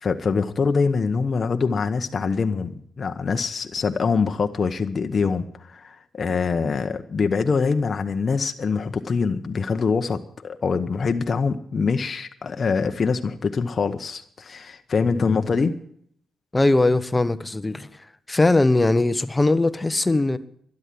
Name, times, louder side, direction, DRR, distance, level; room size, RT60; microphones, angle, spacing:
voice 1, 0.0-15.7, left 5 dB, 50° left, 0.9 m, -24 dB
voice 2, 16.5-17.9 18.3-20.4, left 2 dB, 20° left, 1.1 m, -20 dB
12.5 x 11.0 x 7.5 m
supercardioid pair, 55°, 0 cm